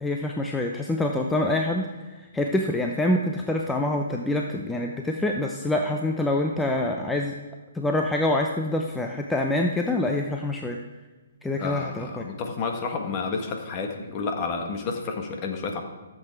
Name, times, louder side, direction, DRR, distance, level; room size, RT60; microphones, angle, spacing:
voice 1, 0.0-7.3 7.7-10.8 11.4-12.2, left 1 dB, 5° left, 2 dB, 0.7 m, -26 dB
voice 2, 11.6-15.8, left 4 dB, 30° left, 3 dB, 1.6 m, -30 dB
14.0 x 7.7 x 4.6 m, 1.2 s
hypercardioid pair, 145°, 0 cm